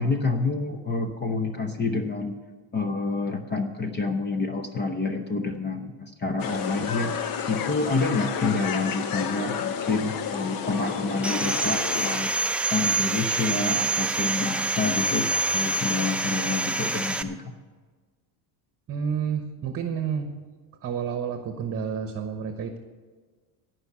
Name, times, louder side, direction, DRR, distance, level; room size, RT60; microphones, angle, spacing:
voice 1, 0.0-2.3 2.7-7.2 7.5-12.3 12.7-17.5, left 3 dB, 25° left, 6 dB, 0.9 m, -28 dB
sound 1, 6.4-12.2, left 7 dB, 50° left, 1.0 m, -31 dB
Sawing, 11.2-17.2, right 2 dB, 5° right, 0.3 m, -26 dB
voice 2, 18.9-20.3 20.8-22.8, right 7 dB, 30° right, 7 dB, 1.1 m, -30 dB
17.0 x 5.7 x 8.3 m, 1.4 s
cardioid pair, 125°, 42 cm